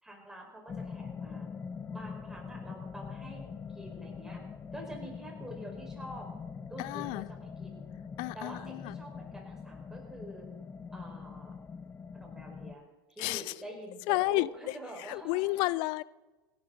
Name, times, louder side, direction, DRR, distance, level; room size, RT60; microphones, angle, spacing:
voice 1, 0.0-1.5 1.9-3.4 3.7-4.5 4.7-6.3 6.7-7.9 8.3-10.5 10.9-11.6 12.1-15.7, right 1 dB, 5° right, 4.7 m, -47 dB
sound 1, 0.7-12.7, left 5 dB, 15° left, 0.9 m, -43 dB
voice 2, 6.8-7.3 8.2-8.9 13.2-13.5 14.1-14.5 15.1-16.0, left 21 dB, 45° left, 0.4 m, -31 dB
28.0 x 11.5 x 3.9 m
figure-of-eight pair, 85°, 12 cm